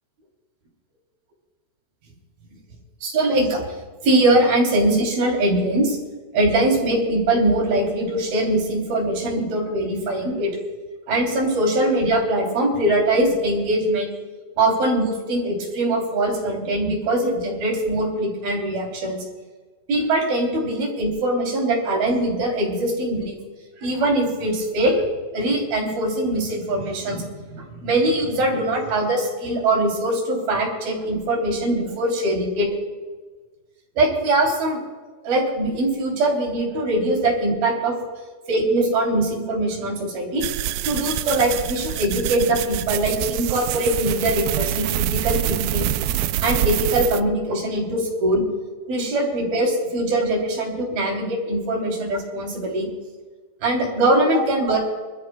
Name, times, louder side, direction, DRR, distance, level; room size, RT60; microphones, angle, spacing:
voice 1, 3.0-6.0 6.3-10.6 11.1-14.1 14.6-19.2 19.9-23.4 23.8-25.1 25.3-32.8 34.0-34.8 35.2-38.0 38.5-40.5 40.8-45.9 46.4-48.4 48.9-52.9 53.6-54.8, right 1 dB, 60° right, -1 dB, 5.0 m, -22 dB
sound 1, 40.4-47.2, right 14 dB, 80° right, 2.3 m, -25 dB
26.5 x 13.5 x 2.3 m, 1.4 s
omnidirectional pair, 4.7 m